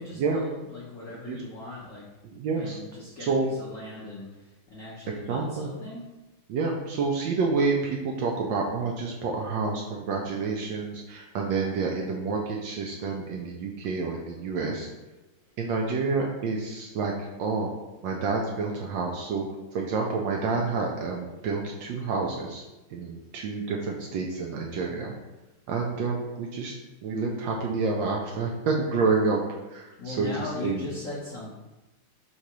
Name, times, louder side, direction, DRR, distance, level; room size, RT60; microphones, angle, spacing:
voice 1, 0.0-2.0 2.5-6.1 15.5-15.6 30.0-31.5, left 2 dB, 70° left, -6 dB, 0.7 m, -39 dB
voice 2, 2.2-2.8 3.2-3.5 5.3-5.7 6.5-14.9 15.6-17.7 18.0-19.5 19.7-22.6 22.9-25.1 25.7-26.7 27.0-29.4 29.7-30.8, right 4 dB, 75° right, 0 dB, 1.1 m, -28 dB
3.8 x 2.8 x 4.6 m, 1.1 s
omnidirectional pair, 2.4 m